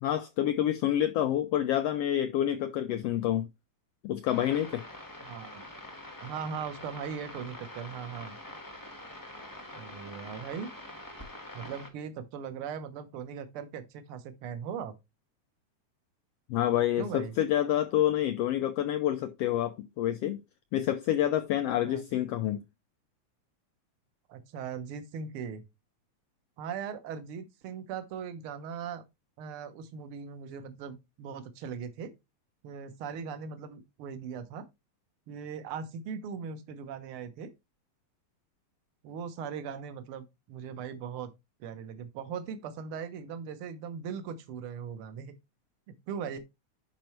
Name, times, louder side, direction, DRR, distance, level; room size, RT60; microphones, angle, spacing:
voice 1, 0.0-3.5 4.0-4.8 16.5-20.4 20.7-22.6, left 11 dB, 90° left, 1.4 m, -28 dB
sound 1, 4.2-11.9, left 1 dB, 20° left, 0.5 m, -45 dB
voice 2, 5.2-5.6 6.2-8.4 9.7-10.7 11.5-14.9 17.0-17.3 21.8-22.0 24.3-25.6 26.6-29.0 29.4-32.1 32.6-34.6 35.3-37.5 39.0-41.3 41.6-45.3 46.1-46.4, right 7 dB, 60° right, 1.6 m, -39 dB
10.5 x 5.3 x 3.2 m
omnidirectional pair, 3.4 m